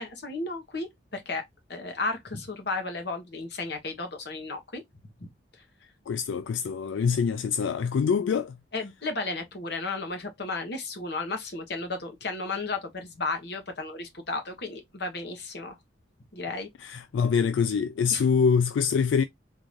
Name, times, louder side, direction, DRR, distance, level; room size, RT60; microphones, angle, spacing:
voice 1, 0.0-1.4 1.7-4.8 5.2-5.3 8.7-15.8 16.3-16.7 18.1-18.3, left 3 dB, 65° left, 1.1 m, -34 dB
voice 2, 6.1-8.6 16.8-19.2, left 6 dB, 90° left, 0.3 m, -25 dB
3.7 x 2.5 x 3.0 m
head